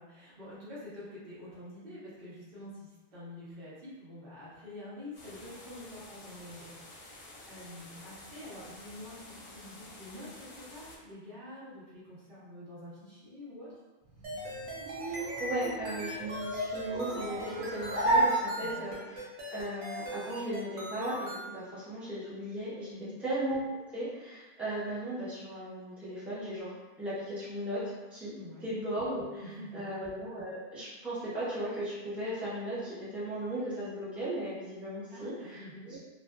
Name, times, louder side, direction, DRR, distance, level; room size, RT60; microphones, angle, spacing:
voice 1, 0.0-13.8 18.6-18.8 22.9-23.1 28.3-28.6 29.4-29.9 35.1-35.9, left 1 dB, 65° right, -9 dB, 1.1 m, -47 dB
sound 1, 5.1-11.0, left 2 dB, 65° left, 0.7 m, -50 dB
sound 2, 14.1-19.1, right 2 dB, 35° right, 0.9 m, -32 dB
sound 3, 14.2-21.5, right 1 dB, 90° right, 0.9 m, -41 dB
voice 2, 15.0-22.9 23.2-23.6 23.9-29.4 29.7-36.0, right 1 dB, ahead, -11 dB, 0.6 m, -37 dB
2.4 x 2.4 x 2.2 m, 1.2 s
omnidirectional pair, 1.0 m